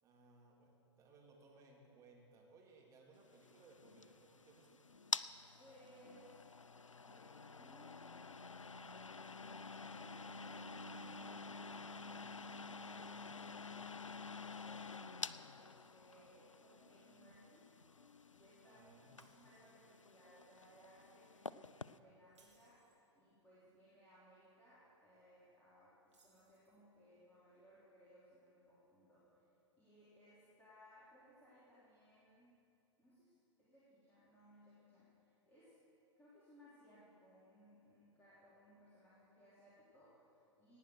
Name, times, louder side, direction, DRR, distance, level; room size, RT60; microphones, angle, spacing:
voice 1, 0.0-4.8 18.6-19.2, right 3 dB, 20° right, -2 dB, 2.5 m, -64 dB
sound 1, 3.3-22.0, left 4 dB, 85° left, 0.4 m, -49 dB
voice 2, 5.6-6.4 6.9-9.1 9.8-15.1 15.5-17.7 18.3-18.8 19.3-29.5 29.8-32.5 33.0-33.3 33.6-35.8 36.2-40.8, equal, 10° left, -10 dB, 3.2 m, -65 dB
Shatter, 19.2-20.0 20.4-20.6 22.2-23.1 26.1-26.9, right 3 dB, 70° right, 2.7 m, -72 dB
17.0 x 9.3 x 6.2 m, 2.8 s
figure-of-eight pair, 105°, 16 cm